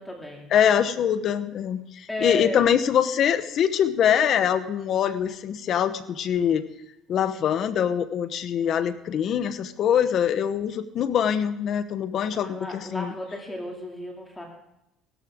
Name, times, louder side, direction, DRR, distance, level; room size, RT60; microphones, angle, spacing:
voice 1, 0.0-0.5 2.1-2.7 12.3-14.4, left 1 dB, 10° left, 0 dB, 2.6 m, -33 dB
voice 2, 0.5-6.6 7.1-13.1, left 9 dB, 50° left, 11 dB, 1.0 m, -23 dB
16.5 x 13.0 x 3.7 m, 0.87 s
cardioid pair, 110°, 0 cm